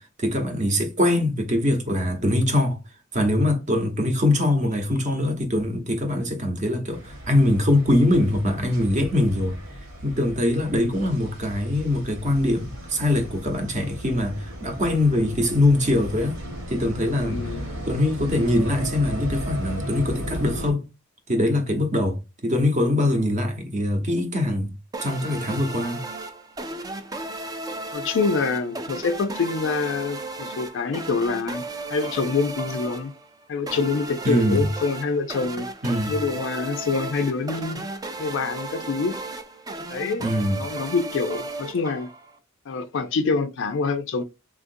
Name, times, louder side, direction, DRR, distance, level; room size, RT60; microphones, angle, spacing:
voice 1, 0.2-2.8 3.1-9.6 10.0-16.4 16.7-17.5 17.9-20.8 21.3-24.7 25.0-26.0 34.2-34.7 35.8-36.2 40.2-40.6, left 1 dB, 35° right, 0.8 m, -23 dB
sound 1, 6.9-20.7, equal, 70° right, 1.2 m, -35 dB
voice 2, 17.2-17.6 27.9-31.6 31.9-33.1 33.5-35.7 36.1-37.9 38.2-39.2 39.9-40.3 40.6-42.1 42.7-44.2, left 4 dB, 65° left, 0.4 m, -26 dB
sound 2, 24.9-42.4, right 2 dB, 20° right, 0.4 m, -35 dB
3.6 x 2.5 x 2.5 m
head